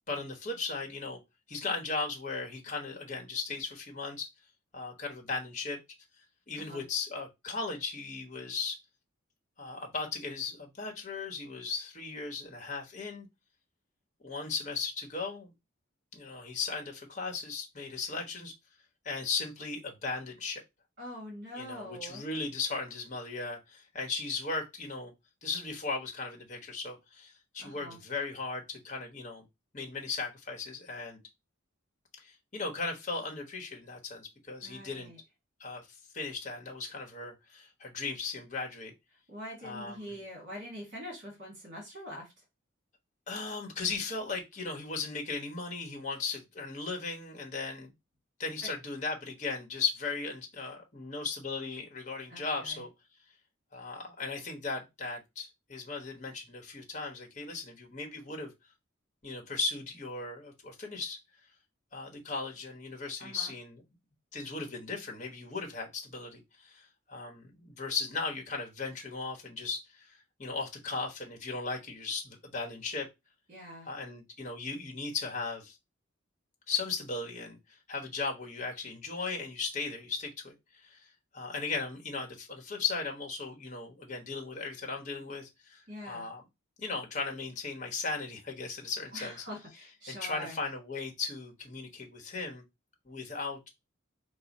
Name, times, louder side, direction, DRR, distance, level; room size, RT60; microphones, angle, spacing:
voice 1, 0.1-1.2 1.5-4.3 4.7-5.8 6.5-8.8 9.6-13.3 14.2-15.5 16.1-18.5 19.0-20.6 21.5-25.1 25.4-29.4 29.7-31.2 32.2-35.1 35.6-38.9 39.6-40.2 43.3-47.9 48.4-52.9 53.7-58.5 59.2-61.2 61.9-63.8 64.3-73.1 73.8-75.8 76.7-81.0 81.3-86.4 86.8-89.4 90.1-92.6 93.0-93.6, left 4 dB, 35° left, 1.1 m, -37 dB
voice 2, 21.0-22.2 27.6-28.0 34.6-35.2 39.3-42.3 48.6-48.7 52.3-52.8 63.2-63.5 73.5-73.9 85.9-86.3 89.1-90.6, equal, 40° right, 1.7 m, -44 dB
4.6 x 2.2 x 4.1 m
head